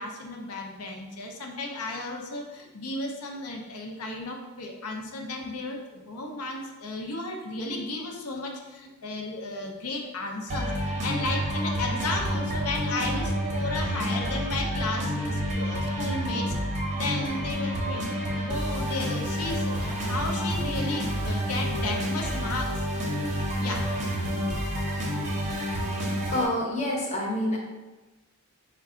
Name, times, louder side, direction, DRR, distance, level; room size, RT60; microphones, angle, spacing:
voice 1, 0.0-18.1 18.4-22.9 23.6-23.9, left 2 dB, 80° left, 1 dB, 0.6 m, -34 dB
sound 1, 10.5-26.5, equal, 30° right, 0.6 m, -29 dB
voice 2, 26.3-27.6, left 1 dB, 30° left, -2 dB, 0.7 m, -27 dB
4.5 x 2.2 x 3.7 m, 1.1 s
head